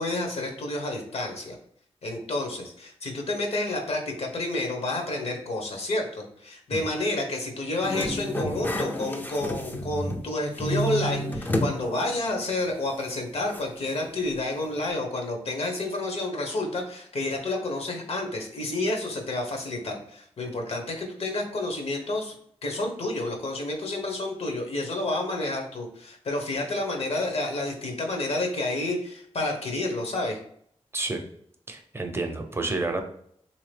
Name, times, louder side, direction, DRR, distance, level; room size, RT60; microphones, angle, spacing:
voice 1, 0.0-1.6 2.0-22.3 22.6-30.4, left 2 dB, 70° left, 2 dB, 0.9 m, -30 dB
sound 1, 7.8-10.3 10.6-11.8 12.2-12.3 13.5-13.6, equal, 15° left, 0.4 m, -29 dB
voice 2, 31.7-33.0, right 2 dB, 25° right, 5 dB, 0.6 m, -29 dB
3.5 x 2.8 x 3.2 m, 0.66 s
wide cardioid pair, 110°, 11 cm